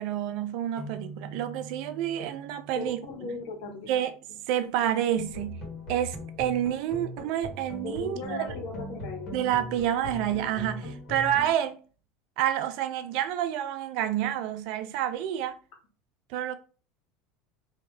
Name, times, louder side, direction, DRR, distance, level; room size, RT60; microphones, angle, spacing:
voice 1, 0.0-3.3 3.9-4.1 4.5-8.5 9.3-11.8 12.4-15.6 16.3-16.6, right 11 dB, 65° right, 0.5 m, -29 dB
sound 1, 0.8-4.3, right 3 dB, 40° right, 1.1 m, -45 dB
voice 2, 2.7-4.0 7.8-9.3, left 3 dB, 65° left, 1.4 m, -37 dB
sound 2, 5.1-11.5, left 1 dB, 45° left, 1.6 m, -39 dB
3.1 x 2.8 x 3.2 m
supercardioid pair, 110°, 0 cm